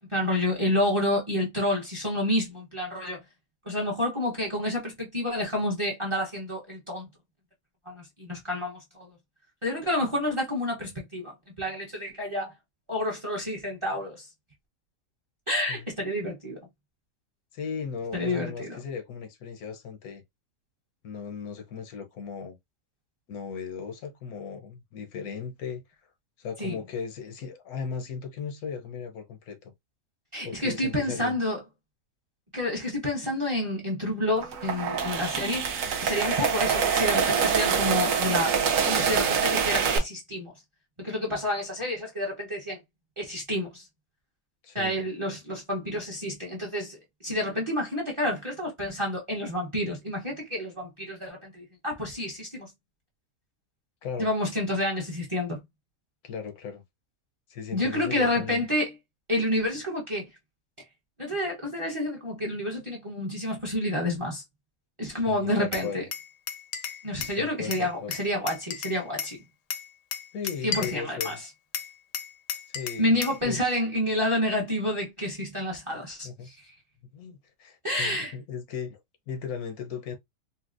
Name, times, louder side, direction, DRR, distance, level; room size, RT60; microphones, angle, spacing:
voice 1, 0.1-3.2 3.6-7.1 7.9-9.1 9.6-12.5 12.9-14.3 15.5-16.6 18.1-18.7 26.6-26.8 30.3-31.6 32.5-38.5 38.9-40.5 41.0-42.8 43.2-43.9 44.7-47.0 47.2-52.7 54.2-55.6 57.7-58.9 59.3-60.3 61.2-64.4 65.0-66.0 67.0-69.4 70.6-71.3 73.0-76.6 77.8-78.3, left 1 dB, 25° right, 0.7 m, -29 dB
voice 2, 17.5-20.2 21.0-22.6 23.3-25.8 26.4-29.7 30.4-31.4 44.6-45.0 54.0-54.3 56.2-56.8 57.5-58.6 65.1-66.0 67.3-68.1 70.3-71.4 72.7-73.2 73.4-73.6 76.2-76.5 77.1-79.0 79.3-80.2, left 6 dB, 85° left, 1.3 m, -37 dB
sound 1, 34.4-40.0, right 6 dB, 70° right, 1.0 m, -25 dB
Glass, 65.7-67.4 67.7-69.4 69.7-71.4 71.7-73.4, left 8 dB, 70° left, 0.9 m, -34 dB
4.2 x 2.1 x 2.4 m
omnidirectional pair, 1.5 m